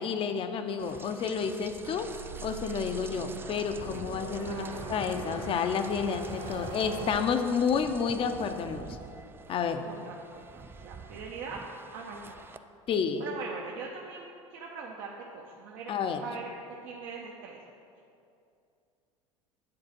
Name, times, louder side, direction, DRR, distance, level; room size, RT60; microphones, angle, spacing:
voice 1, 0.0-2.1 2.4-8.9 9.5-9.8 12.9-13.2 15.9-16.2, left 6 dB, 35° left, 8 dB, 0.6 m, -30 dB
Rain, 0.8-12.6, right 4 dB, 15° right, 0.3 m, -46 dB
sound 1, 1.8-7.2, right 3 dB, 75° right, 1.7 m, -42 dB
voice 2, 4.4-5.2 9.8-11.6 11.9-12.5 13.2-15.9 16.2-17.6, right 4 dB, 55° right, -1 dB, 0.8 m, -42 dB
8.8 x 4.1 x 6.1 m, 2.6 s
figure-of-eight pair, 75°, 17 cm